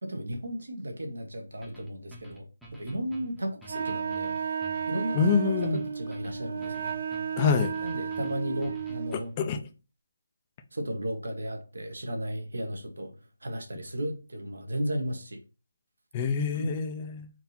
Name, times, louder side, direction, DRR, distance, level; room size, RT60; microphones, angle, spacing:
voice 1, 0.0-4.5 4.9-6.9 7.8-9.4 10.7-13.1 13.4-15.4 16.5-16.7, right 1 dB, 80° right, 1.3 m, -34 dB
sound 1, 1.6-9.5, right 2 dB, ahead, 0.9 m, -48 dB
Wind instrument woodwind instrument, 3.7-9.2, right 7 dB, 50° right, 0.4 m, -33 dB
voice 2, 5.1-5.8 7.4-7.7 9.1-9.6 16.1-17.3, left 6 dB, 25° left, 0.6 m, -26 dB
4.5 x 2.8 x 4.1 m
figure-of-eight pair, 160°, 0 cm